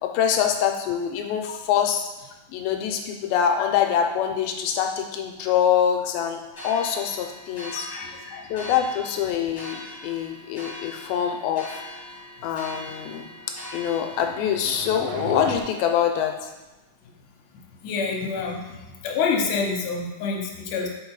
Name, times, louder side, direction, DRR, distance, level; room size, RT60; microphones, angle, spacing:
voice 1, 0.0-2.1 2.5-7.9 8.5-11.8 12.4-13.3 13.7-16.5, left 9 dB, 85° left, 4 dB, 2.5 m, -25 dB
sound 1, 6.5-14.7, left 1 dB, 25° left, 2.5 m, -41 dB
voice 2, 7.9-8.5 17.8-20.9, left 5 dB, 70° left, 0 dB, 2.4 m, -27 dB
sound 2, 13.7-15.6, right 7 dB, 80° right, 2.5 m, -36 dB
6.9 x 4.4 x 4.7 m, 1.1 s
omnidirectional pair, 4.3 m